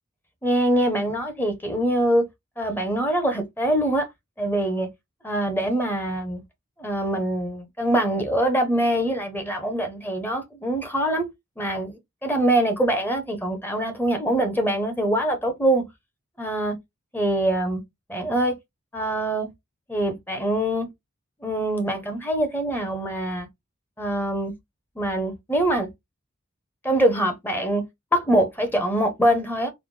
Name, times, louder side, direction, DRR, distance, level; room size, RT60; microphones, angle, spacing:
voice 1, 0.4-2.3 2.6-4.1 4.4-4.9 5.2-6.4 6.8-11.3 11.6-15.9 16.4-16.8 17.1-17.8 18.1-18.5 18.9-19.5 19.9-20.9 21.4-23.5 24.0-24.5 25.0-25.9 26.8-27.8 28.1-29.7, right 1 dB, 10° left, 0.8 m, -24 dB
4.0 x 2.2 x 3.2 m
head